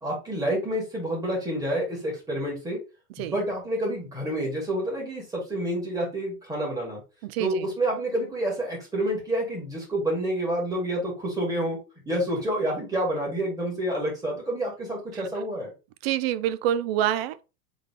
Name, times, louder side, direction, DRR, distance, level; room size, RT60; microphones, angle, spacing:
voice 1, 0.0-2.8 3.2-7.0 7.4-11.8 12.1-15.7, right 1 dB, 5° right, 2.5 m, -28 dB
voice 2, 7.2-7.7 15.1-15.3 16.0-17.4, right 11 dB, 40° right, 0.5 m, -27 dB
4.1 x 3.8 x 3.3 m
hypercardioid pair, 130°, 47 cm